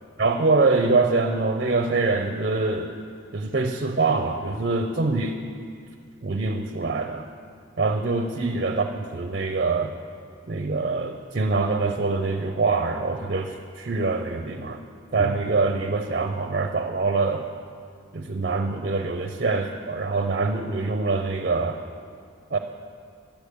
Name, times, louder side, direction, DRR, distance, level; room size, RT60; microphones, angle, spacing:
voice 1, 0.2-2.9 3.3-5.4 6.2-7.2 7.8-9.9 10.5-14.8 15.1-17.4 18.1-21.8 22.5-22.6, right 3 dB, 50° right, 6 dB, 0.5 m, -24 dB
10.5 x 8.5 x 8.0 m, 2.3 s
head